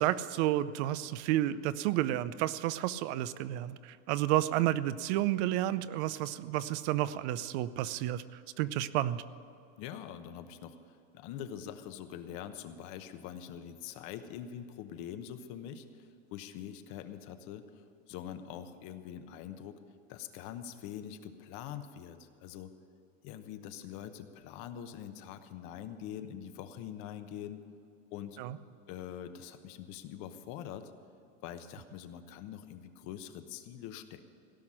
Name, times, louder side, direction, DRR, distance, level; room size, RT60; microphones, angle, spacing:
voice 1, 0.0-8.2 8.6-9.2 28.4-28.6, right 14 dB, 55° right, 16 dB, 0.6 m, -31 dB
voice 2, 9.8-19.8 20.1-22.7 23.2-27.6 28.1-28.4 28.9-30.9 31.4-34.2, left 9 dB, 50° left, 9 dB, 1.1 m, -44 dB
16.5 x 6.0 x 10.0 m, 2.6 s
supercardioid pair, 140°, 40 cm